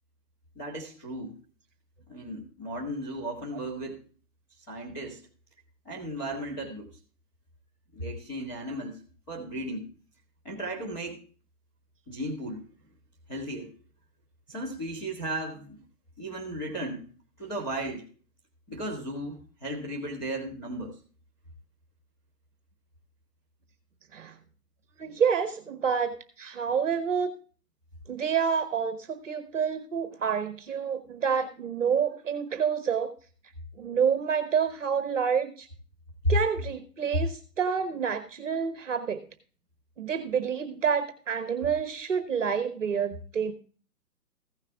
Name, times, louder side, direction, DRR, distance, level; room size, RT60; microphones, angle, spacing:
voice 1, 0.6-1.4 2.1-4.0 4.7-5.2 5.8-6.9 7.9-9.0 9.3-9.9 10.4-11.2 12.1-12.6 13.3-13.7 14.5-15.8 16.2-17.1 17.4-18.1 18.7-21.0 36.2-36.3, right 1 dB, 15° left, -5 dB, 2.1 m, -35 dB
voice 2, 25.0-27.3 28.1-33.1 33.8-35.7 36.3-39.2 40.0-43.5, right 7 dB, 50° right, 10 dB, 1.2 m, -28 dB
15.5 x 6.5 x 3.5 m, 0.41 s
hypercardioid pair, 175°, 48 cm